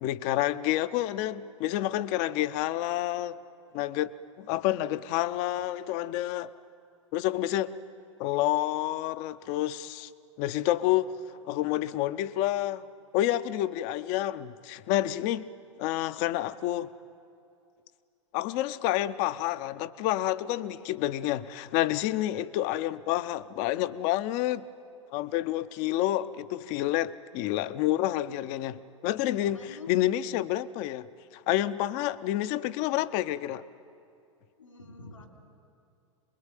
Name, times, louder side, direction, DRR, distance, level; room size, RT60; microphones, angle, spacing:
voice 1, 0.0-3.4 3.7-4.1 4.4-6.5 7.1-7.7 8.2-10.1 10.4-11.1 11.5-12.8 13.1-15.5 15.8-16.9 18.3-24.6 25.1-31.1 31.5-33.6, left 14 dB, 45° left, 0.8 m, -29 dB
voice 2, 29.4-29.9 34.6-35.3, left 3 dB, 85° left, 3.4 m, -46 dB
24.5 x 21.5 x 9.2 m
figure-of-eight pair, 90°, 16 cm